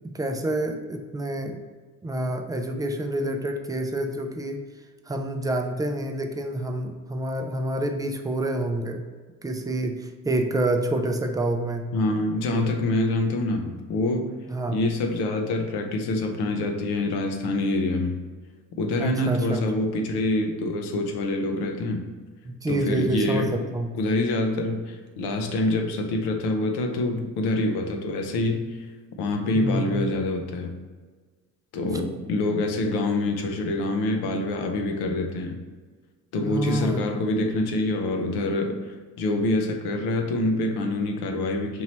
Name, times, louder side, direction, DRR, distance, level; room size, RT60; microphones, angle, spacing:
voice 1, 0.1-1.6 2.0-4.6 5.1-9.0 9.4-11.9 14.5-14.8 19.0-19.7 22.4-23.9 29.5-30.1 36.4-37.0, right 1 dB, 10° right, 5 dB, 0.4 m, -28 dB
voice 2, 11.9-14.3 14.7-18.2 18.8-22.1 22.7-23.5 23.9-28.8 29.2-30.7 31.7-35.6 36.3-41.8, left 2 dB, 70° left, 4 dB, 0.7 m, -26 dB
4.5 x 2.9 x 2.9 m, 1.4 s
hypercardioid pair, 55°, 41 cm